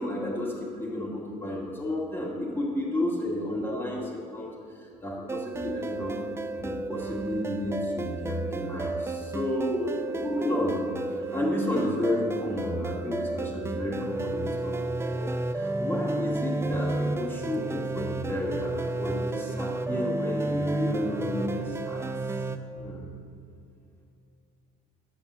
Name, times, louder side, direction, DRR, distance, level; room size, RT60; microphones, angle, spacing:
voice 1, 0.0-6.1 6.6-10.8 11.1-22.0 22.8-23.0, left 1 dB, 15° left, -8 dB, 2.3 m, -32 dB
sound 1, 5.3-22.6, right 2 dB, 15° right, 0.6 m, -32 dB
10.5 x 7.0 x 7.6 m, 2.5 s
cardioid pair, 110°, 17 cm